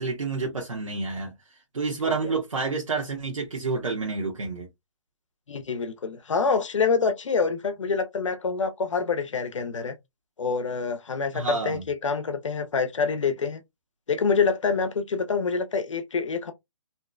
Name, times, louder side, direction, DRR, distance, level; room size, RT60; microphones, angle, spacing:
voice 1, 0.0-1.3 1.7-4.7 11.3-11.8, right 4 dB, 85° right, 0.9 m, -29 dB
voice 2, 5.5-9.9 10.4-13.6 14.1-16.5, left 5 dB, 70° left, 0.6 m, -26 dB
2.8 x 2.1 x 2.4 m
hypercardioid pair, 160°, 16 cm